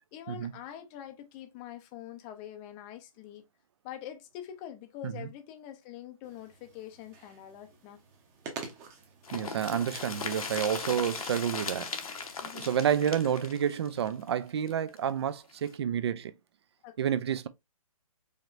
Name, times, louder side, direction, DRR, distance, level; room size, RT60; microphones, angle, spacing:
voice 1, 0.1-3.4 3.8-8.0 12.4-12.7 16.8-17.1, left 11 dB, 15° left, 0.5 m, -45 dB
sound 1, 6.2-13.2, right 4 dB, 15° right, 0.8 m, -50 dB
sound 2, 9.2-15.0 15.3-15.4 15.7-15.8, left 5 dB, 75° left, 1.0 m, -38 dB
voice 2, 9.3-12.2 12.5-16.3 17.0-17.5, right 9 dB, 45° right, 0.5 m, -30 dB
5.0 x 3.0 x 2.5 m
hypercardioid pair, 150°, 18 cm